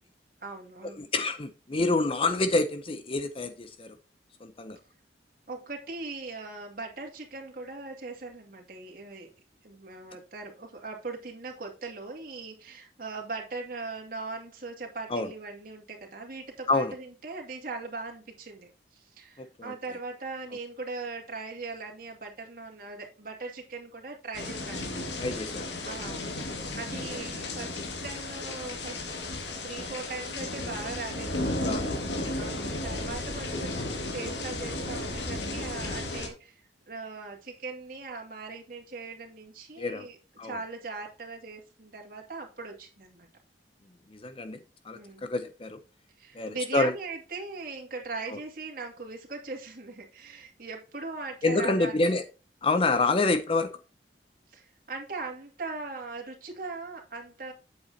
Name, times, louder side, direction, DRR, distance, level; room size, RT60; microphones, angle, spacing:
voice 1, 0.4-1.1 5.5-9.3 9.6-25.1 25.8-26.3 26.7-29.2 29.6-31.6 32.3-40.2 40.4-43.3 44.9-45.2 46.2-52.1 52.9-53.1 54.5-57.5, right 3 dB, 55° right, 2.4 m, -40 dB
voice 2, 1.0-4.0 4.4-4.8 15.1-15.3 16.7-16.9 19.4-19.7 25.2-26.0 31.6-32.4 39.8-40.1 40.4-40.6 44.1-44.6 44.8-45.8 46.3-46.9 48.3-48.4 51.4-52.2 52.6-53.7, left 3 dB, 30° left, 0.6 m, -28 dB
sound 1, 24.3-36.3, left 2 dB, 85° left, 2.1 m, -34 dB
8.8 x 7.8 x 2.8 m
head